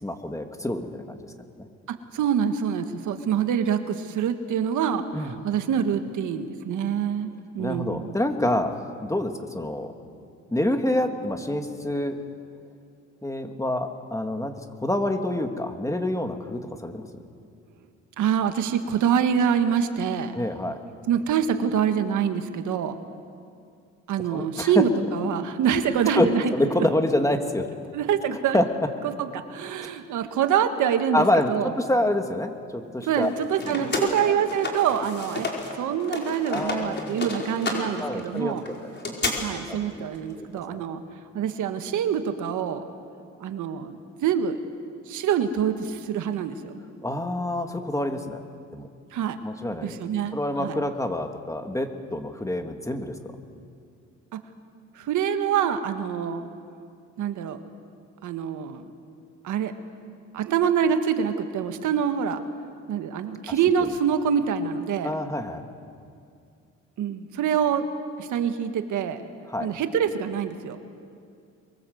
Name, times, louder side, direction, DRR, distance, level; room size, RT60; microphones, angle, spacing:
voice 1, 0.0-1.2 1.6-1.7 5.1-5.3 7.6-9.9 10.5-12.2 13.2-14.5 14.8-17.1 20.3-20.8 24.3-24.8 26.1-27.7 28.3-28.6 31.1-33.3 33.8-34.3 36.5-37.2 38.0-39.2 39.7-40.1 40.4-40.5 47.0-48.4 48.7-48.9 49.4-50.0 50.3-53.1 63.8-63.9 65.0-65.6 69.5-69.7, left 1 dB, 10° left, 5 dB, 2.1 m, -27 dB
voice 2, 2.1-5.0 5.4-7.3 7.5-8.2 18.2-20.3 21.1-22.9 24.1-26.5 27.9-28.6 29.0-31.7 33.0-35.5 35.7-38.6 39.4-41.0 41.3-42.8 43.4-44.6 45.1-46.7 49.1-49.4 49.8-50.8 54.3-54.4 54.9-56.5 57.2-57.6 58.2-58.8 59.4-59.7 60.3-62.4 62.9-65.1 67.0-67.9 68.2-69.2 69.6-70.8, right 8 dB, 80° right, 8 dB, 1.6 m, -25 dB
sound 1, 33.1-35.7 36.0-39.3, left 3 dB, 35° left, 5.0 m, -31 dB
25.0 x 22.5 x 7.9 m, 2.4 s
cardioid pair, 90°, 30 cm